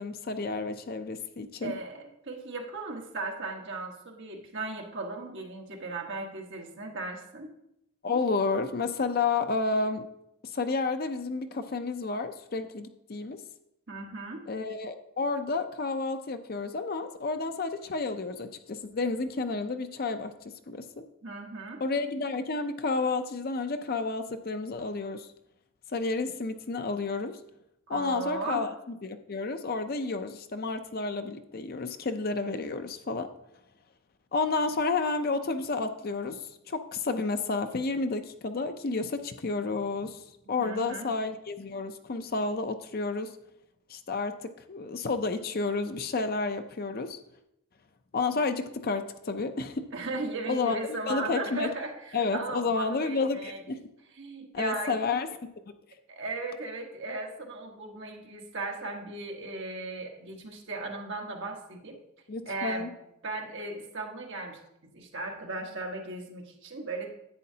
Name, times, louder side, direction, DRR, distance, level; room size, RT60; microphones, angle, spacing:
voice 1, 0.0-1.7 8.0-10.0 10.5-13.4 14.5-20.3 20.7-21.0 21.8-25.3 25.9-27.3 27.9-33.3 34.3-36.4 36.7-40.2 40.5-43.3 43.9-44.3 44.7-47.2 48.1-49.8 50.5-51.7 52.1-53.8 54.5-55.3 62.3-62.9, left 3 dB, 45° left, 8 dB, 0.5 m, -31 dB
voice 2, 1.6-7.5 13.9-14.4 21.2-21.8 27.9-28.7 40.4-41.1 49.9-53.6 54.2-54.9 56.1-62.0 62.4-62.9 63.2-64.6 64.9-67.1, right 3 dB, 55° right, 1 dB, 1.3 m, -37 dB
10.5 x 8.4 x 2.8 m, 0.82 s
head